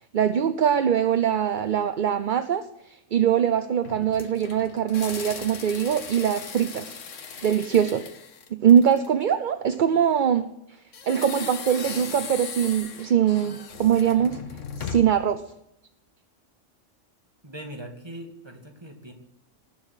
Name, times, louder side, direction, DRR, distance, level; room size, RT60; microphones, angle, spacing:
voice 1, 0.1-7.0 7.4-8.0 8.6-10.5 11.1-14.4 14.8-15.4, right 8 dB, 50° right, 11 dB, 0.7 m, -22 dB
sound 1, 3.8-9.2 10.9-15.3, left 6 dB, 80° left, 1.5 m, -38 dB
voice 2, 17.4-19.1, right 1 dB, 20° right, 3 dB, 2.3 m, -40 dB
19.0 x 7.3 x 9.8 m, 0.84 s
omnidirectional pair, 1.3 m